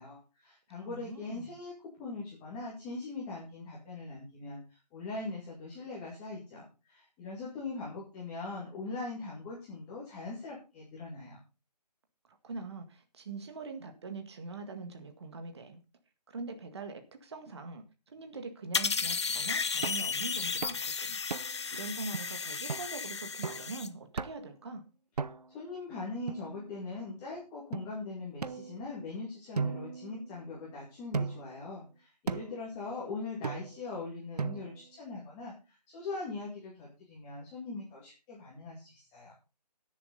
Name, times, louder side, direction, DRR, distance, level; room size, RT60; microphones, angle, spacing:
voice 1, 0.0-1.7 2.0-4.6 4.9-11.4 25.5-35.5 35.9-39.3, left 3 dB, 10° left, -5 dB, 2.3 m, -41 dB
voice 2, 0.8-1.6 12.3-15.8 16.3-21.2 21.7-24.8, right 3 dB, 40° right, 6 dB, 2.0 m, -43 dB
sound 1, 18.7-23.9, left 5 dB, 40° left, 0.7 m, -34 dB
sound 2, 19.8-20.1 20.6-20.9 21.3-21.7 22.1-22.2 22.7-22.9 23.4-23.7 24.2-24.5 25.2-25.6 26.3-27.0 27.7-27.8 28.4-29.1 29.6-30.6 31.1-31.6 32.3-32.6 33.4-33.9 34.4-34.9, right 5 dB, 65° right, 0.9 m, -37 dB
16.5 x 7.3 x 4.0 m, 0.30 s
figure-of-eight pair, 165°, 21 cm